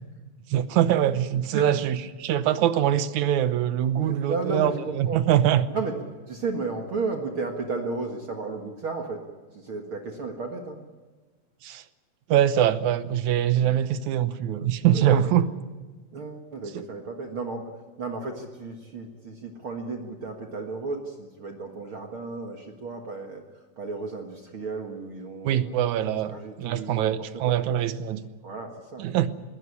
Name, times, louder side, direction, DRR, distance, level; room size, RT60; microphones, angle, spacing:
voice 1, 0.5-5.6 11.6-11.8 12.3-15.5 16.7-16.9 25.4-28.2 29.0-29.3, right 11 dB, 75° right, 12 dB, 2.3 m, -23 dB
voice 2, 4.0-5.2 5.7-6.0 6.3-9.2 9.5-10.8 14.9-15.2 16.1-17.7 18.0-23.4 23.8-25.7 26.3-27.6 28.4-29.1, right 3 dB, 50° right, 3 dB, 2.3 m, -33 dB
21.0 x 17.5 x 9.9 m, 1.3 s
omnidirectional pair, 3.4 m